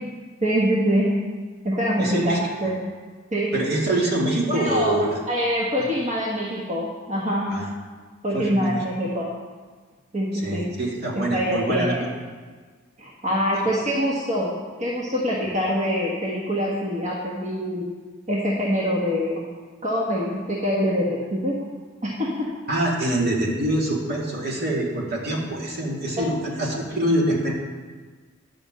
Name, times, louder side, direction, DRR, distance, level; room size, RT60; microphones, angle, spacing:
voice 1, 0.4-1.2 1.6-2.8 3.3-3.5 4.5-5.0 5.3-7.6 8.2-9.3 10.1-10.7 11.1-12.0 13.0-14.5 14.8-17.8 18.3-19.5 19.8-21.6 22.0-22.5, equal, 35° right, -5 dB, 1.4 m, -24 dB
voice 2, 2.0-2.4 3.5-5.2 5.8-5.9 7.5-7.7 8.3-8.8 10.4-12.1 22.7-27.5, right 1 dB, 50° right, -2 dB, 2.2 m, -25 dB
10.5 x 5.6 x 7.5 m, 1.5 s
head